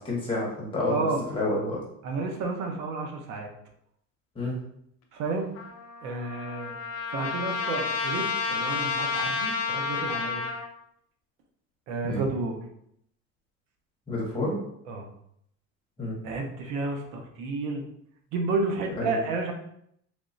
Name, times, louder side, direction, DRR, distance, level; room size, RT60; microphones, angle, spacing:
voice 1, 0.0-1.8 4.3-4.6 12.0-12.2 14.1-14.6 16.0-16.2 19.0-19.2, left 2 dB, 15° left, -4 dB, 1.0 m, -29 dB
voice 2, 0.9-1.2 2.0-3.5 5.1-5.5 6.0-6.7 7.1-10.4 11.9-12.6 14.9-15.1 16.2-17.8 18.3-19.5, right 3 dB, 90° right, 3 dB, 0.8 m, -31 dB
Trumpet, 5.5-10.7, left 5 dB, 50° left, 0.5 m, -30 dB
3.5 x 3.0 x 2.6 m, 0.72 s
cardioid pair, 165°, 31 cm